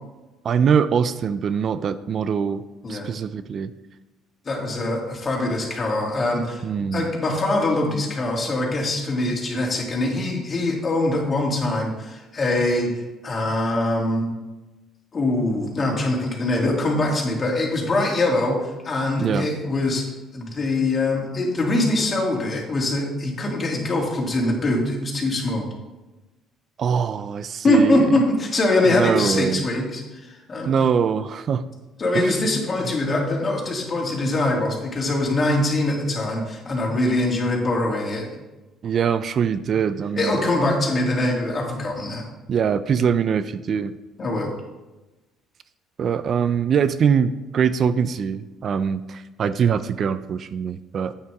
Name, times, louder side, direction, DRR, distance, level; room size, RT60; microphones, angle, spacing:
voice 1, 0.4-2.6 2.9-3.7 6.6-7.1 19.2-19.5 26.8-28.1 28.8-29.7 30.6-31.6 32.1-32.4 32.8-32.9 38.8-40.4 42.5-43.9 46.0-51.1, right 7 dB, 50° right, 13 dB, 0.4 m, -23 dB
voice 2, 4.4-14.3 15.1-20.1 20.3-25.7 27.6-30.7 32.0-38.3 40.2-42.2 44.2-44.5, left 2 dB, 35° left, -1 dB, 2.8 m, -23 dB
9.1 x 8.7 x 3.6 m, 1.1 s
supercardioid pair, 80°, 0 cm